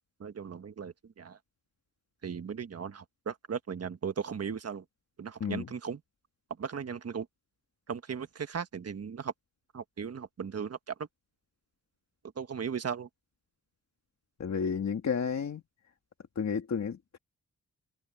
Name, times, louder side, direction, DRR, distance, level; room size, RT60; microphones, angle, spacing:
voice 1, 0.0-1.4 2.2-4.8 5.2-6.0 6.6-7.3 7.9-9.3 9.7-11.1 12.3-13.1, right 6 dB, 50° right, 1.4 m, -37 dB
voice 2, 5.4-5.7 14.4-15.6 16.4-17.2, left 6 dB, 60° left, 1.9 m, -32 dB
wide cardioid pair, 135°, 32 cm